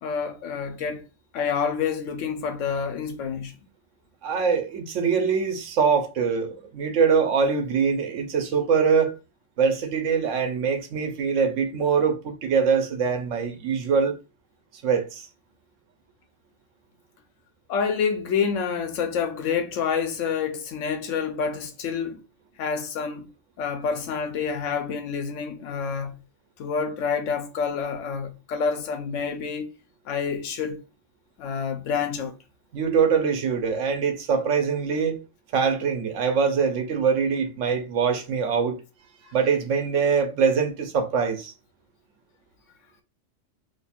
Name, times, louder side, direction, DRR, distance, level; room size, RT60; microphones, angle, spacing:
voice 1, 0.0-1.0 1.3-3.5 17.7-22.2 22.6-23.3 23.6-26.2 26.6-29.7 30.1-30.8 31.4-32.3, left 6 dB, 80° left, 1.0 m, -28 dB
voice 2, 4.2-9.2 9.6-14.2 14.8-15.2 32.7-35.2 35.5-38.8 39.3-41.5, right 6 dB, 80° right, 1.1 m, -23 dB
2.8 x 2.3 x 4.2 m
omnidirectional pair, 1.3 m